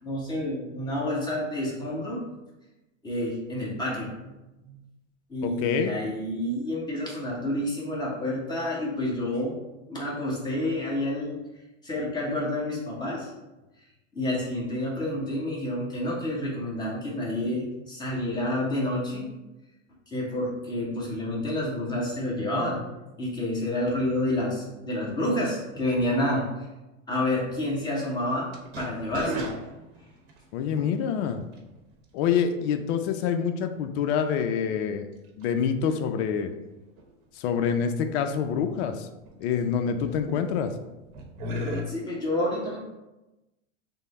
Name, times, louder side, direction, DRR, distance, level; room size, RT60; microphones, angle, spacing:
voice 1, 0.0-2.2 3.0-4.3 4.6-4.8 5.3-9.5 9.9-11.3 11.8-13.3 14.1-19.3 20.1-22.8 23.2-26.5 27.1-28.5 28.8-29.5 30.8-30.9 40.3-40.4 41.9-42.8, left 1 dB, 10° left, -5 dB, 1.0 m, -29 dB
voice 2, 5.4-5.9 30.5-31.4 32.1-35.1 35.4-36.5 37.4-39.1 39.4-40.7, left 7 dB, 55° left, 7 dB, 0.5 m, -26 dB
sound 1, 28.5-30.4 31.5-31.8 32.3-32.4 34.4-34.5 35.4-35.5 35.9-36.1 37.0-37.1 37.7-37.8 38.1-38.6 39.2-39.6 40.0-40.8 41.1-41.8, equal, 50° right, 0.9 m, -35 dB
3.5 x 2.0 x 4.2 m, 1.0 s
hypercardioid pair, 120°, 39 cm